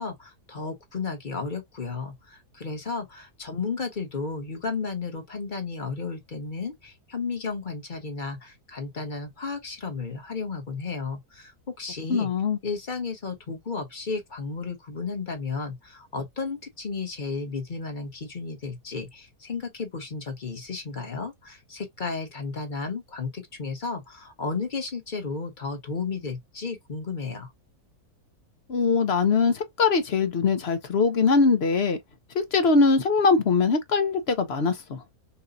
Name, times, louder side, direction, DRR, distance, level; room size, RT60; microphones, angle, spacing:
voice 1, 0.0-12.3 12.6-27.5, left 4 dB, 30° left, 1.4 m, -33 dB
voice 2, 12.1-12.6 28.7-32.0 32.3-35.0, left 4 dB, 50° left, 0.9 m, -22 dB
5.8 x 2.5 x 2.5 m
omnidirectional pair, 1.6 m